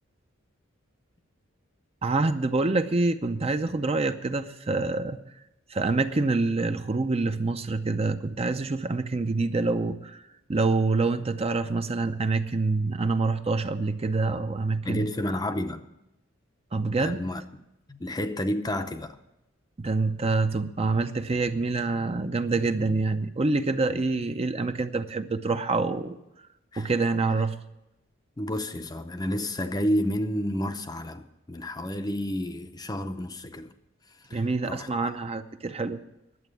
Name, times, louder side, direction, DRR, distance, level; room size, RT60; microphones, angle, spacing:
voice 1, 2.0-5.2 5.7-10.2 10.5-15.1 16.7-17.2 19.8-26.2 26.8-27.6 34.3-36.0, right 3 dB, 30° right, 0.6 m, -26 dB
voice 2, 14.8-15.9 17.0-17.4 17.9-19.2 23.9-24.0 26.7-26.9 28.4-33.7 34.3-34.9, equal, 20° left, 0.6 m, -30 dB
11.0 x 7.9 x 9.7 m
head